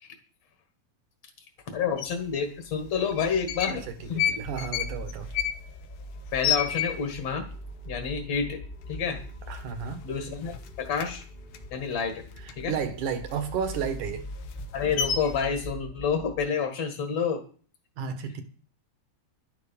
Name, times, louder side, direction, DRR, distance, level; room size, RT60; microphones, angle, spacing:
voice 1, 1.7-3.8 4.1-4.2 6.3-7.5 7.9-8.6 8.9-9.2 10.0-11.2 11.7-12.2 12.6-12.7 14.7-17.4, left 6 dB, 50° left, 2.4 m, -29 dB
sound 1, 1.7-16.5, equal, 25° left, 1.2 m, -42 dB
sound 2, 2.0-2.1 3.0-3.8 4.1-7.3 7.7-7.8 8.0-8.5 8.9-9.1 9.4-10.2 10.5-12.8 13.2-15.5, left 9 dB, 75° left, 2.5 m, -31 dB
voice 2, 4.0-5.3 9.5-10.0 12.4-14.2 18.0-18.4, right 7 dB, 60° right, 2.7 m, -32 dB
12.0 x 11.0 x 5.4 m
omnidirectional pair, 4.3 m